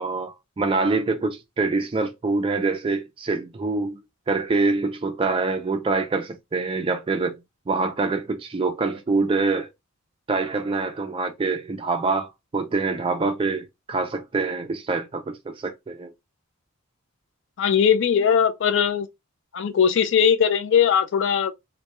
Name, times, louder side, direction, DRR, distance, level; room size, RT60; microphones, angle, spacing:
voice 1, 0.0-4.0 4.3-7.4 7.7-9.7 10.3-16.1, right 3 dB, 25° right, 0.3 m, -25 dB
voice 2, 17.6-19.1 19.5-21.5, left 7 dB, 55° left, 0.4 m, -19 dB
2.2 x 2.1 x 2.9 m
head